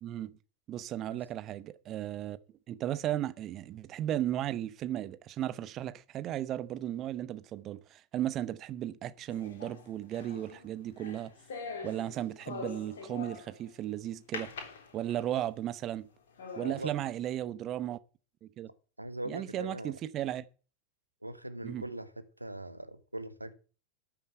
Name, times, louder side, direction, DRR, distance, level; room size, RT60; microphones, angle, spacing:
voice 1, 0.0-0.4 0.7-2.4 2.7-11.3 11.8-14.5 14.9-16.1 16.6-18.0 18.4-18.7 19.3-20.4 21.6-21.8, right 12 dB, 30° right, 0.9 m, -35 dB
sound 1, 9.3-13.7 14.3-15.4 15.9-16.0 16.4-16.8, left 4 dB, 60° left, 3.6 m, -44 dB
voice 2, 16.6-16.9 19.0-19.9 21.2-22.1 22.4-23.5, right 1 dB, 85° right, 1.4 m, -40 dB
13.0 x 7.2 x 8.4 m
figure-of-eight pair, 90°, 0 cm